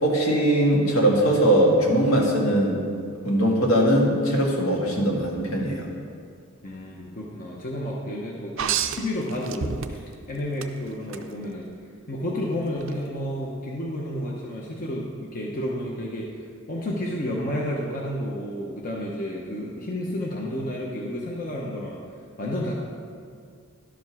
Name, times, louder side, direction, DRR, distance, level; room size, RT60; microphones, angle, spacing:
voice 1, 0.0-2.8 3.2-5.9, right 1 dB, 75° left, -2 dB, 1.9 m, -21 dB
voice 2, 6.6-11.7 12.1-16.3 16.7-22.1 22.4-22.7, left 1 dB, 40° left, -3 dB, 0.9 m, -31 dB
sound 1, 8.6-10.2 10.6-11.2 12.8-12.9, right 7 dB, 60° right, 0.5 m, -28 dB
11.5 x 5.2 x 6.1 m, 2.2 s
head